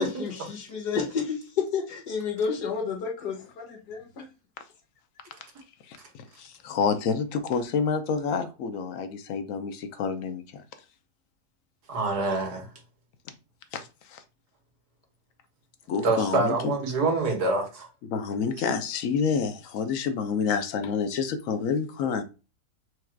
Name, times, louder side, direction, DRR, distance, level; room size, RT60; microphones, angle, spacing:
voice 1, 0.0-4.2, left 6 dB, 90° left, 1.6 m, -30 dB
voice 2, 6.4-10.6 13.7-14.2 15.9-16.7 18.1-22.2, left 6 dB, 65° left, 1.0 m, -28 dB
voice 3, 11.9-12.7 16.0-17.9, right 3 dB, 85° right, 2.0 m, -26 dB
4.7 x 2.5 x 4.4 m
omnidirectional pair, 1.7 m